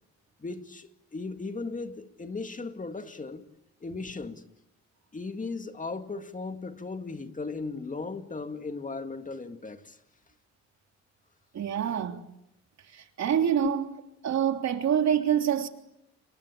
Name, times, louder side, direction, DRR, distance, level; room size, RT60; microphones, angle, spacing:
voice 1, 0.4-3.4 3.8-4.4 5.1-10.0 13.6-13.7, left 3 dB, 25° left, 2.3 m, -36 dB
voice 2, 11.5-12.2 12.9-13.9 14.2-15.7, right 9 dB, 60° right, 3.3 m, -26 dB
29.5 x 23.0 x 8.5 m
cardioid pair, 90°, 30 cm